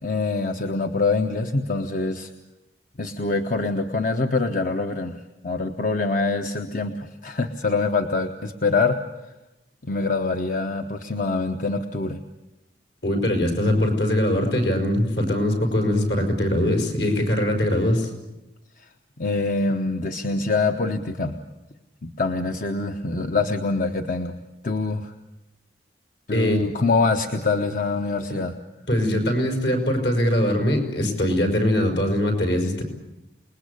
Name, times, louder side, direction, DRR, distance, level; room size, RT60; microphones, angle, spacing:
voice 1, 0.0-2.3 3.0-9.0 9.8-12.2 18.8-18.9 19.2-21.4 22.0-25.1 26.3-28.5, left 3 dB, 45° left, 6 dB, 1.1 m, -25 dB
voice 2, 13.0-18.1 26.3-26.6 28.9-32.8, left 1 dB, 70° left, 3 dB, 5.6 m, -22 dB
28.0 x 20.5 x 8.4 m, 0.97 s
head